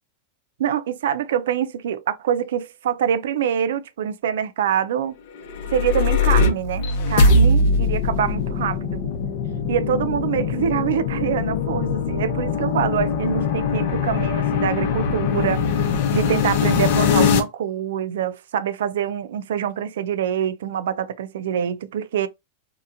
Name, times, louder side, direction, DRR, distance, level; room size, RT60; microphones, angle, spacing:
voice 1, 0.6-5.1 5.7-9.0 9.7-15.6 16.1-22.3, right 9 dB, 80° right, 0.4 m, -25 dB
sound 1, 5.4-17.4, left 4 dB, 55° left, 0.6 m, -21 dB
2.8 x 2.2 x 2.5 m
supercardioid pair, 165°, 0 cm